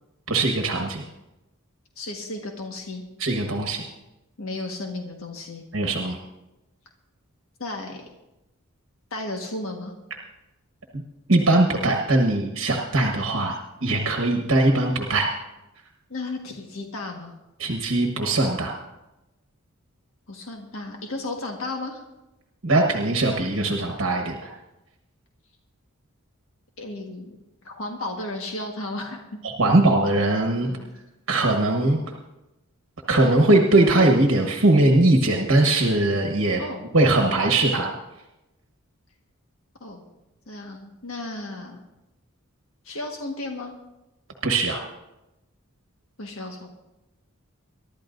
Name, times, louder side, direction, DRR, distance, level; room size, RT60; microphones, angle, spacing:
voice 1, 0.3-1.0 3.2-3.8 5.7-6.2 11.3-13.5 13.8-15.3 17.6-18.7 22.6-24.5 29.4-30.7 31.3-32.0 33.1-36.6 36.9-37.9 44.4-44.8, right 2 dB, 60° right, 2 dB, 1.3 m, -20 dB
voice 2, 2.0-3.0 4.4-5.6 7.6-8.1 9.1-9.9 16.1-17.3 20.3-22.0 26.8-27.3 27.6-29.2 30.6-30.9 36.6-36.8 39.8-40.1 40.5-41.8 42.8-43.7 46.2-46.7, left 2 dB, 70° left, 2 dB, 1.6 m, -34 dB
23.5 x 12.0 x 2.6 m, 0.97 s
head